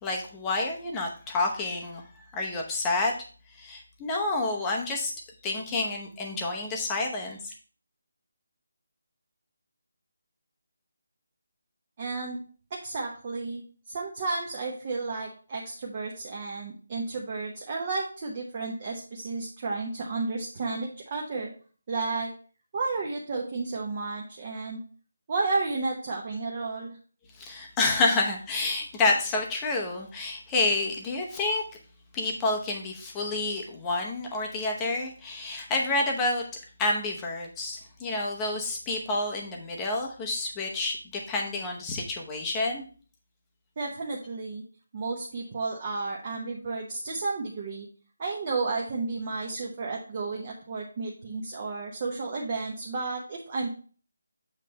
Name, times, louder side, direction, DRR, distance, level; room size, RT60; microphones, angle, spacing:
voice 1, 0.0-3.1 3.6-5.1 5.4-7.5 27.4-31.6 32.1-36.4 36.8-41.0 41.3-42.8, left 2 dB, 10° left, 0 dB, 0.8 m, -29 dB
voice 2, 12.0-12.4 12.7-13.6 13.9-21.5 21.9-22.3 22.7-24.8 25.3-27.0 43.8-44.6 44.9-47.9 48.2-53.7, right 3 dB, 25° right, -2 dB, 0.9 m, -32 dB
7.5 x 3.2 x 5.3 m, 0.40 s
figure-of-eight pair, 175°, 0 cm